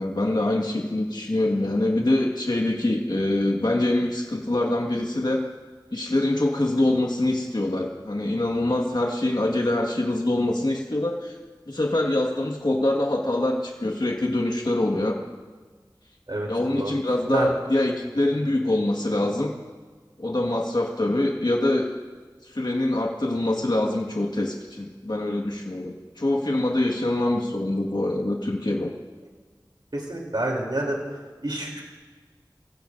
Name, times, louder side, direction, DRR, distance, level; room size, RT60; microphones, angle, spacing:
voice 1, 0.0-5.4 5.9-11.3 11.7-15.2 16.5-19.5 20.2-22.0 22.4-28.9, left 1 dB, 60° left, 0 dB, 1.7 m, -24 dB
voice 2, 29.9-31.8, right 1 dB, 70° right, -1 dB, 3.2 m, -28 dB
25.5 x 15.5 x 2.7 m, 1.4 s
wide cardioid pair, 40°, 8 cm